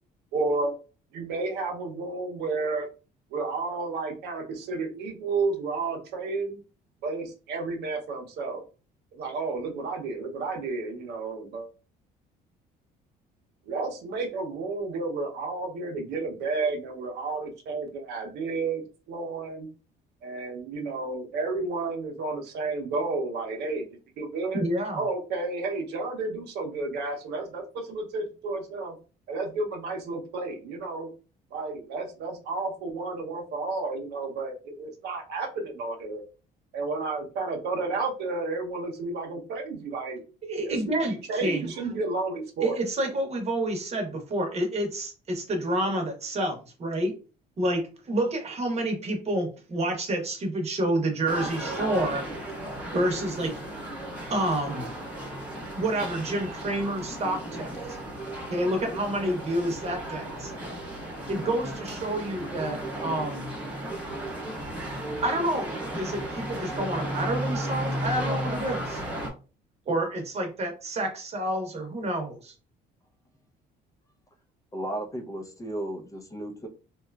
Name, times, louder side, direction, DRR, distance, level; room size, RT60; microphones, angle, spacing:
voice 1, 0.3-0.7 1.1-2.9 3.3-6.6 7.0-8.6 9.1-11.7 13.7-19.7 20.2-23.8 24.2-24.6 24.9-29.0 29.3-31.1 31.5-36.2 36.7-40.2 40.6-40.7 41.3-42.8, right 3 dB, 75° right, 2 dB, 0.7 m, -31 dB
voice 2, 24.6-25.0 40.4-41.7 42.6-47.1 47.6-52.2 52.9-53.5 54.3-54.9 55.7-57.7 58.5-60.5 61.3-63.5 65.2-65.7 66.0-69.0 69.9-72.5, right 1 dB, 40° right, 4 dB, 0.9 m, -29 dB
sound 1, 51.3-69.3, right 1 dB, 10° right, 1.0 m, -34 dB
voice 3, 74.7-76.7, right 1 dB, 20° left, 3 dB, 0.5 m, -34 dB
2.9 x 2.3 x 2.3 m, 0.34 s
cardioid pair, 110°, 17 cm